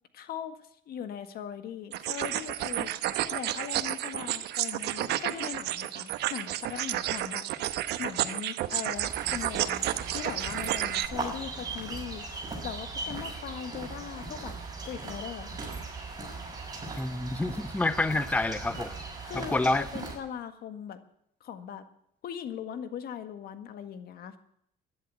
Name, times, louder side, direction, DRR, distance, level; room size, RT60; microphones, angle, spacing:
voice 1, 0.1-0.6 0.9-7.4 8.0-12.2 12.6-14.5 14.8-15.6 19.2-21.0 21.4-21.8 22.2-24.4, left 9 dB, 65° left, 10 dB, 1.7 m, -39 dB
sound 1, 1.9-11.1, right 13 dB, 75° right, 1.0 m, -31 dB
sound 2, 8.9-20.2, right 3 dB, 25° right, 6.0 m, -39 dB
voice 2, 17.0-19.0 19.4-19.9, left 2 dB, 10° left, 12 dB, 0.8 m, -28 dB
13.0 x 11.0 x 9.5 m, 0.73 s
cardioid pair, 110°, 17 cm